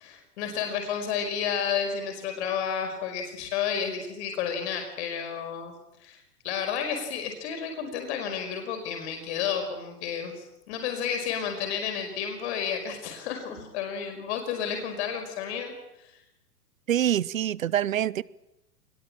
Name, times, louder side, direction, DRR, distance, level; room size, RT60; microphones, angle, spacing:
voice 1, 0.0-5.7 6.0-15.7 16.0-16.2, left 7 dB, 45° left, 5 dB, 5.2 m, -31 dB
voice 2, 16.9-18.2, right 11 dB, 60° right, 22 dB, 1.0 m, -25 dB
26.5 x 21.0 x 8.8 m, 0.88 s
figure-of-eight pair, 110°, 47 cm